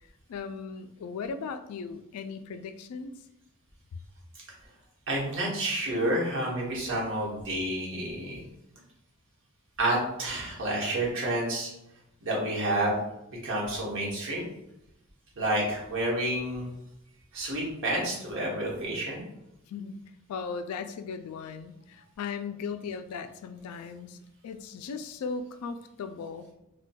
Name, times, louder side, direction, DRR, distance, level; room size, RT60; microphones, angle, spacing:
voice 1, 0.3-3.1 19.7-20.0 20.3-24.2 24.4-26.5, left 5 dB, 80° left, 9 dB, 0.3 m, -37 dB
voice 2, 5.1-8.4 9.8-11.7 12.2-13.0 13.4-14.4 15.4-16.7 17.3-19.2, right 1 dB, 60° right, -4 dB, 1.0 m, -29 dB
4.1 x 2.2 x 2.2 m, 0.86 s
head